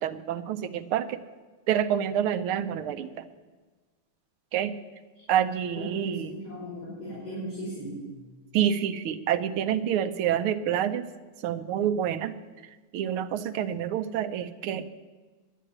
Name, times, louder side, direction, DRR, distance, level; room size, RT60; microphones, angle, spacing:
voice 1, 0.0-1.2 1.7-3.2 4.5-4.7 5.3-6.3 8.5-11.1 11.4-12.3 12.9-14.9, right 9 dB, 85° right, 11 dB, 1.6 m, -27 dB
voice 2, 5.8-8.0, equal, 55° left, -10 dB, 6.1 m, -37 dB
10.0 x 10.0 x 9.9 m, 1.3 s
omnidirectional pair, 2.3 m